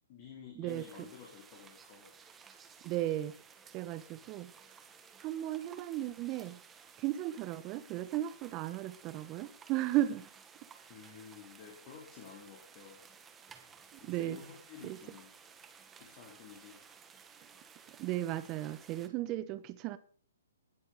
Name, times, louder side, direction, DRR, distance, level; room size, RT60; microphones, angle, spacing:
voice 1, 0.0-2.1 10.9-13.0 14.0-15.3 16.0-16.8, left 7 dB, 35° left, 4.1 m, -52 dB
voice 2, 0.6-1.1 2.8-3.3 3.7-4.5 5.2-6.6 7.0-10.3 13.9-14.4 14.8-15.0 17.9-20.0, right 14 dB, 30° right, 1.3 m, -35 dB
sound 1, 0.7-19.1, right 6 dB, 15° right, 1.7 m, -57 dB
19.0 x 8.3 x 3.9 m
hypercardioid pair, 130°, 0 cm